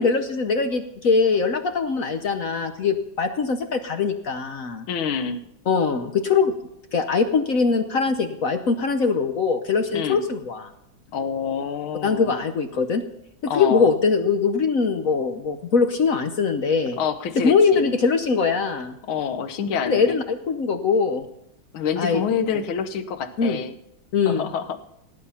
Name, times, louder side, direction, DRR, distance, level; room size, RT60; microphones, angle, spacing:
voice 1, 0.0-4.8 5.7-6.5 6.9-10.7 12.0-13.0 13.5-17.0 17.4-18.9 19.9-21.2 22.0-22.2 22.5-22.6 23.4-23.6 24.1-24.4, left 5 dB, 55° left, 7 dB, 1.0 m, -22 dB
voice 2, 4.9-5.4 9.9-10.2 11.1-12.4 13.4-13.9 17.0-17.9 19.0-20.2 21.7-23.8 24.3-24.8, left 7 dB, 80° left, 9 dB, 1.8 m, -27 dB
17.5 x 8.9 x 5.7 m, 0.79 s
omnidirectional pair, 2.2 m